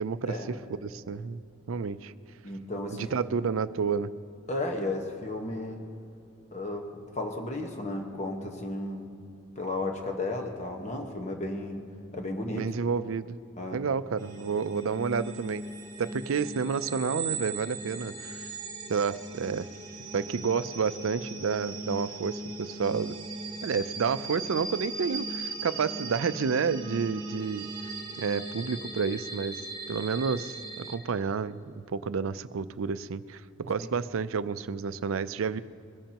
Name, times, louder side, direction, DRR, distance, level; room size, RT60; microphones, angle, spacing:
voice 1, 0.0-0.4 0.7-1.4 1.7-2.1 2.9-4.1 12.5-13.4 13.7-15.6 16.0-18.4 18.9-19.7 20.1-23.2 23.6-27.6 28.2-29.6 29.9-35.6, right 5 dB, 85° right, 14 dB, 0.5 m, -30 dB
voice 2, 2.4-3.1 4.5-5.8 6.5-9.1 9.6-11.9 12.1-12.6 13.6-13.8 33.8-33.9, left 2 dB, 35° left, 2 dB, 1.2 m, -34 dB
sound 1, 14.2-31.0, right 3 dB, 25° right, 2.0 m, -38 dB
22.0 x 14.0 x 2.9 m, 2.6 s
head